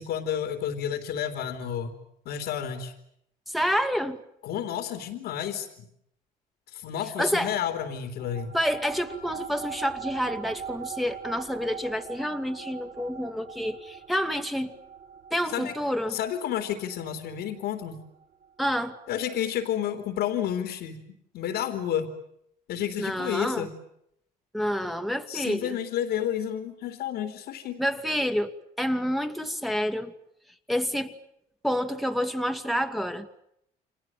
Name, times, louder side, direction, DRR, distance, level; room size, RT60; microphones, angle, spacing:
voice 1, 0.0-1.9 2.3-2.9 4.4-5.7 6.7-8.5 15.5-15.8 16.1-18.0 19.1-21.0 21.3-22.1 22.7-23.7 25.3-27.8, left 10 dB, 80° left, 7 dB, 3.5 m, -30 dB
voice 2, 3.5-4.2 7.2-7.5 8.5-14.7 15.3-16.2 18.6-18.9 23.0-23.7 24.5-25.8 27.8-28.5 28.8-30.1 30.7-31.1 31.6-33.3, equal, ahead, 6 dB, 2.3 m, -28 dB
sound 1, 8.2-19.0, right 7 dB, 55° right, 5.7 m, -42 dB
30.0 x 26.0 x 7.5 m, 0.75 s
cardioid pair, 110°, 17 cm